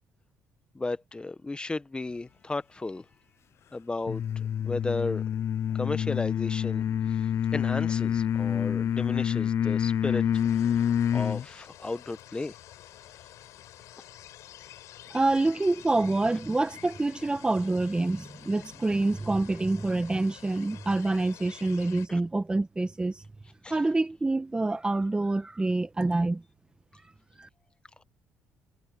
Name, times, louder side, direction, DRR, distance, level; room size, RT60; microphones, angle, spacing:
voice 1, 0.7-3.0 3.7-5.2 5.7-6.8 7.1-10.2 10.5-12.5 22.1-22.2 23.6-23.8, left 2 dB, 20° left, 1.3 m, -34 dB
sound 1, 4.1-11.4, left 9 dB, 55° left, 0.6 m, -27 dB
sound 2, 10.3-22.1, left 14 dB, 75° left, 5.1 m, -49 dB
voice 2, 15.1-23.1 23.7-26.4 27.4-27.5, right 2 dB, 15° right, 1.5 m, -26 dB
supercardioid pair, 80°, 5 cm